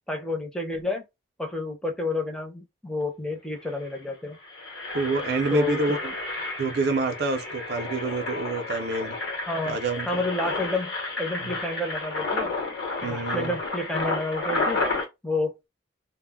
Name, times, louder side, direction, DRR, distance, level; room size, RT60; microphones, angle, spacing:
voice 1, 0.1-1.1 1.4-4.4 5.5-6.0 9.5-9.8 10.1-12.5 13.0-14.8 15.2-15.6, left 2 dB, 5° left, 0.5 m, -30 dB
Engine, 3.3-3.4 3.7-3.9 4.3-15.0, left 3 dB, 60° left, 0.8 m, -31 dB
voice 2, 4.9-6.1 6.6-9.1 9.7-10.2 11.4-11.5 13.0-13.5, right 3 dB, 55° right, 0.4 m, -27 dB
2.0 x 2.0 x 3.4 m
head